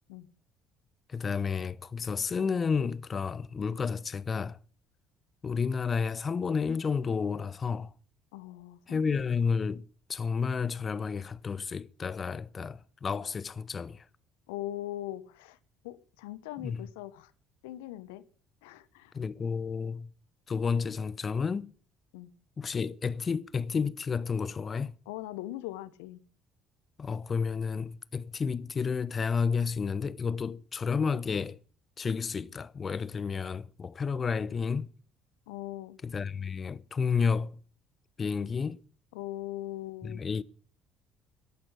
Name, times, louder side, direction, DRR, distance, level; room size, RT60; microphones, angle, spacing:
voice 1, 1.1-4.6 5.4-7.9 8.9-14.1 16.6-16.9 19.1-20.1 20.5-21.7 22.6-25.0 27.0-31.6 32.0-34.9 36.0-37.6 38.2-38.8 40.0-40.4, left 5 dB, 35° left, 0.8 m, -31 dB
voice 2, 8.3-9.2 14.5-15.6 15.8-17.3 17.6-18.2 18.6-19.1 22.1-22.3 25.1-26.2 35.5-36.0 39.1-40.2, left 15 dB, 75° left, 1.2 m, -40 dB
14.0 x 11.5 x 7.5 m
hypercardioid pair, 55°, 0 cm